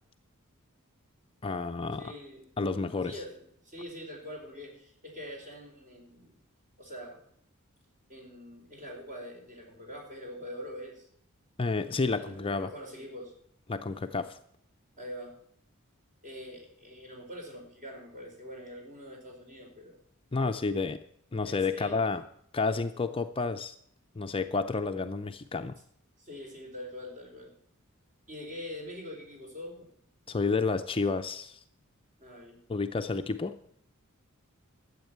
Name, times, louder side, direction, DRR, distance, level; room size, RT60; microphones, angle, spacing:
voice 1, 1.4-2.1 2.6-3.2 11.6-12.7 13.7-14.4 20.3-21.0 21.3-22.2 22.5-23.7 24.2-25.7 30.3-31.6 32.7-33.6, left 4 dB, 25° left, 8 dB, 0.5 m, -30 dB
voice 2, 2.0-2.5 3.0-6.4 6.8-7.2 8.1-11.1 12.2-13.3 15.0-15.3 16.2-20.0 21.4-22.0 26.2-27.5 28.3-29.9 32.2-32.8, left 1 dB, 35° right, 0 dB, 4.5 m, -44 dB
12.5 x 8.2 x 8.0 m, 0.68 s
head